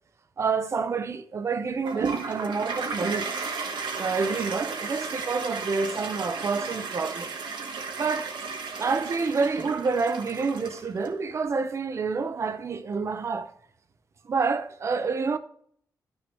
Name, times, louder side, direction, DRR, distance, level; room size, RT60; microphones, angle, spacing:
voice 1, 0.4-3.3 4.0-7.3 8.0-8.4 8.8-13.5 14.2-15.4, right 4 dB, 40° right, 0.6 m, -28 dB
Toilet flush, 1.9-11.1, right 4 dB, 85° right, 1.3 m, -34 dB
12.0 x 6.4 x 3.0 m
wide cardioid pair, 175°, 8 cm